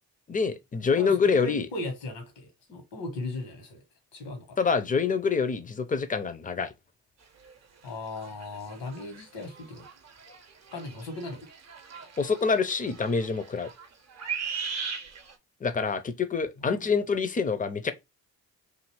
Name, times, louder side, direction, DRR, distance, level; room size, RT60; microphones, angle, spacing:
voice 1, 0.3-1.7 4.6-6.7 12.2-13.7 15.6-17.9, left 5 dB, 20° left, 0.5 m, -26 dB
voice 2, 0.9-3.8 4.1-4.6 7.8-9.9 10.7-11.5 16.6-16.9, left 2 dB, 75° left, 1.3 m, -37 dB
sound 1, 7.4-7.5 7.9-15.3, right 6 dB, 35° right, 0.7 m, -39 dB
2.7 x 2.6 x 3.0 m
hypercardioid pair, 45°, 45 cm